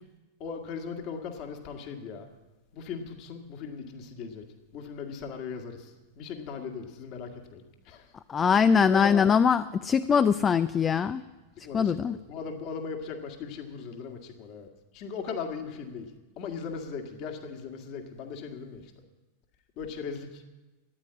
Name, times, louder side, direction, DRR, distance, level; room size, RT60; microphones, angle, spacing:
voice 1, 0.4-2.3 2.7-4.4 4.7-8.1 8.9-9.3 11.6-14.7 14.9-18.9 19.8-20.4, left 6 dB, 40° left, 4 dB, 2.0 m, -38 dB
voice 2, 8.3-11.2 11.7-12.2, left 6 dB, 20° left, 14 dB, 0.4 m, -22 dB
14.0 x 9.8 x 9.6 m, 1.2 s
figure-of-eight pair, 90°, 0 cm